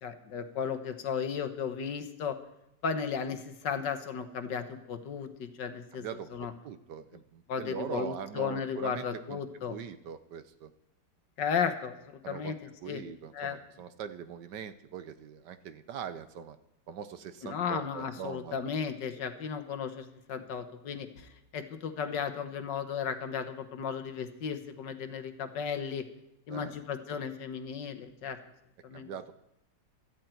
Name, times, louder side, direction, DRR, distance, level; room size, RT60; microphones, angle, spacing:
voice 1, 0.0-2.4 2.8-6.0 6.3-6.5 7.5-9.8 11.4-12.6 12.9-13.0 13.3-13.6 17.4-26.0 26.5-28.4 28.8-29.1, left 7 dB, 70° left, 8 dB, 1.8 m, -35 dB
voice 2, 5.9-9.4 9.7-10.7 12.2-12.6 12.8-16.6 16.9-18.6 26.5-26.8 28.9-29.3, right 7 dB, 70° right, 12 dB, 1.4 m, -42 dB
17.0 x 13.0 x 4.5 m, 0.85 s
omnidirectional pair, 2.0 m